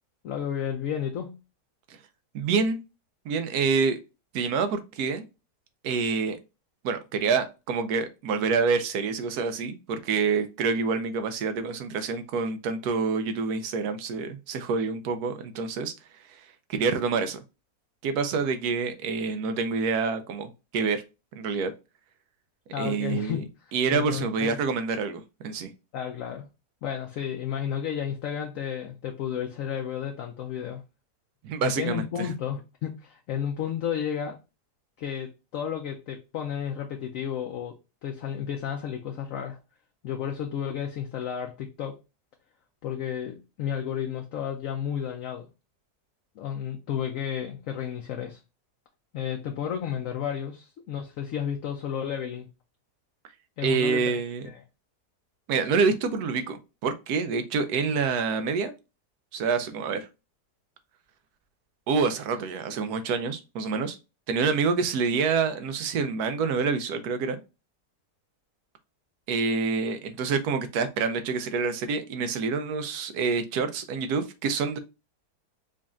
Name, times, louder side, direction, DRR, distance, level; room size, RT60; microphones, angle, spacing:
voice 1, 0.2-1.4 22.7-23.5 23.9-24.6 25.9-26.5 26.8-30.8 31.6-34.4 35.0-39.6 40.0-42.0 42.8-45.5 46.4-48.4 49.1-52.5 53.6-54.0 54.5-54.6, left 9 dB, 70° left, 0.8 m, -32 dB
voice 2, 2.3-2.8 3.2-4.0 4.3-5.3 5.8-6.4 6.8-15.9 16.3-16.4 16.7-17.4 18.0-21.0 21.3-21.7 22.8-23.4 23.7-25.7 31.4-32.3 53.6-54.5 55.5-58.7 59.3-60.1 61.9-64.0 64.3-67.4 69.3-74.8, right 5 dB, 75° right, 1.1 m, -27 dB
5.1 x 2.4 x 2.4 m
omnidirectional pair, 1.7 m